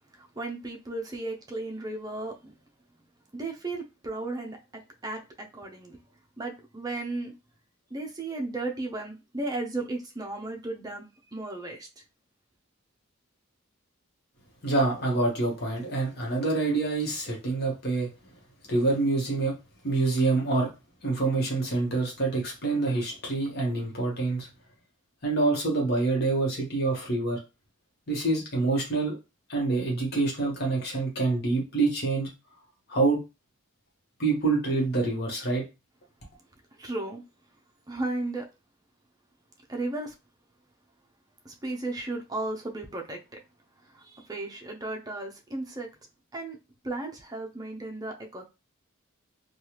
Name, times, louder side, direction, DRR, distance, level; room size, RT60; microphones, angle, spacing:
voice 1, 0.1-2.5 3.3-6.0 6.4-7.4 7.9-11.9 36.8-37.2 37.9-38.5 39.7-40.1 41.4-43.4 43.8-45.9 46.3-46.6 46.8-48.4, right 2 dB, 20° right, 0.5 m, -35 dB
voice 2, 14.6-18.1 18.7-19.5 19.8-20.7 21.0-24.5 25.2-27.4 28.1-29.1 29.5-32.3 32.9-33.2 34.2-35.7, right 3 dB, 50° left, 1.1 m, -26 dB
3.2 x 2.3 x 2.9 m
head